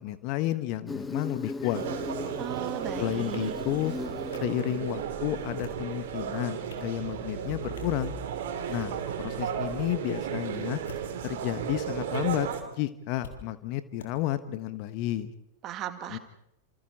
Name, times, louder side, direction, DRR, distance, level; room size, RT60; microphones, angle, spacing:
voice 1, 0.0-1.8 3.0-3.9 4.4-8.1 8.7-10.8 11.2-15.3 16.1-16.2, left 14 dB, 45° left, 13 dB, 1.4 m, -31 dB
Insect, 0.9-5.8, left 3 dB, 10° left, 1.3 m, -39 dB
sound 1, 1.7-12.6, right 8 dB, 55° right, 3.1 m, -34 dB
voice 2, 2.4-3.5 15.6-16.2, right 11 dB, 35° right, 9 dB, 2.0 m, -37 dB
sound 2, 3.3-3.4 4.3-4.4 5.4-5.9 6.4-6.9 7.8-8.0 8.6-9.0 9.7-9.9 10.8-11.3 12.1-12.2 13.2-13.4 14.0-14.1, left 5 dB, 65° left, 3.8 m, -45 dB
28.5 x 28.0 x 4.4 m, 0.81 s
figure-of-eight pair, 90°, 0 cm